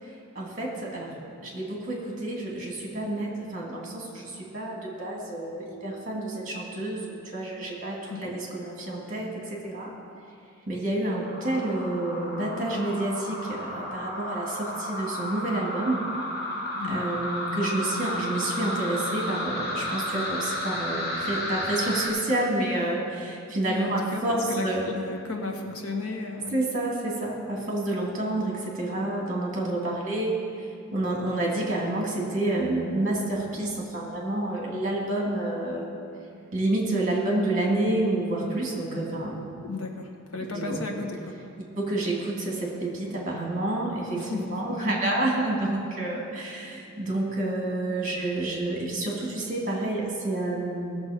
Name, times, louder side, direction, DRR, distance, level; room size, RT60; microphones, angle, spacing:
voice 1, 0.3-1.1 1.4-9.9 10.7-16.0 16.9-24.9 26.5-35.9 36.5-39.4 40.5-40.8 41.8-51.0, right 1 dB, 35° right, -2 dB, 2.4 m, -29 dB
sound 1, 11.2-22.1, left 1 dB, 50° left, 3.0 m, -33 dB
voice 2, 23.7-26.5 39.6-41.4 44.1-44.6, left 3 dB, 70° left, 2 dB, 1.3 m, -34 dB
16.5 x 7.1 x 5.1 m, 2.4 s
head